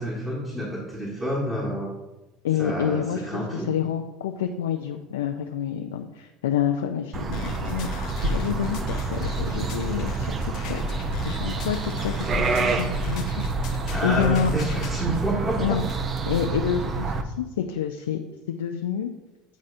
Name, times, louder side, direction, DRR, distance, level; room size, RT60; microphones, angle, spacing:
voice 1, 0.0-1.9 2.6-3.8 13.9-15.8, equal, 20° right, -5 dB, 1.5 m, -28 dB
voice 2, 2.4-13.4 14.0-14.5 15.6-15.8 16.3-18.2 18.5-19.1, left 8 dB, 85° left, 5 dB, 0.3 m, -28 dB
sound 1, 7.1-17.2, right 3 dB, 35° right, 0.6 m, -28 dB
sound 2, 7.3-14.9, left 5 dB, 60° left, 0.9 m, -38 dB
9.1 x 4.1 x 2.5 m, 1.0 s
hypercardioid pair, 80°, 0 cm